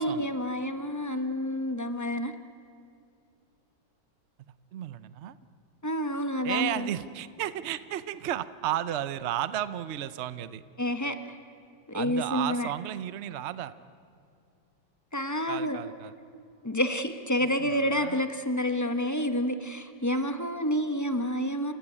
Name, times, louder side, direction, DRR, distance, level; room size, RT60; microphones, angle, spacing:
voice 1, 0.0-2.3 5.8-6.9 10.8-11.2 11.9-12.7 15.1-15.8 16.6-21.7, equal, 15° left, 8 dB, 0.8 m, -29 dB
voice 2, 4.7-5.4 6.4-10.6 11.9-13.7 15.5-16.1 17.6-18.2, right 11 dB, 70° right, 14 dB, 0.6 m, -33 dB
29.0 x 16.0 x 9.8 m, 2.5 s
omnidirectional pair, 2.1 m